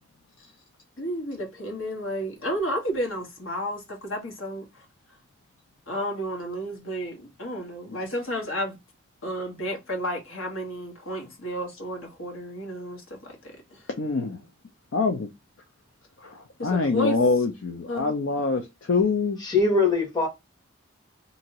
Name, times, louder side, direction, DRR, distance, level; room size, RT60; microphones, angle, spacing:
voice 1, 1.0-4.8 5.9-8.8 9.2-13.9 16.6-17.2 17.9-18.1, equal, 90° left, 1.3 m, -32 dB
voice 2, 14.0-14.4 14.9-15.3 16.2-19.4, left 4 dB, 75° left, 0.5 m, -25 dB
voice 3, 19.4-20.3, left 3 dB, 20° left, 1.0 m, -22 dB
2.8 x 2.6 x 2.8 m
head